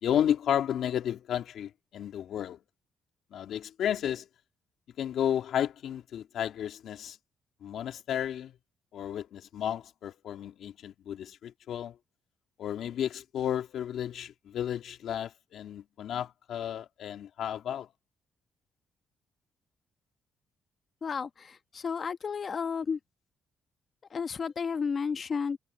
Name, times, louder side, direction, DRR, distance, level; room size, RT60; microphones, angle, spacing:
voice 1, 0.0-2.6 3.3-4.3 5.0-7.2 7.6-8.5 8.9-12.0 12.6-17.9, left 10 dB, 70° left, 2.7 m, -32 dB
voice 2, 21.0-23.0 24.1-25.6, left 5 dB, 45° left, 1.1 m, -32 dB
cardioid pair, 90°, 0 cm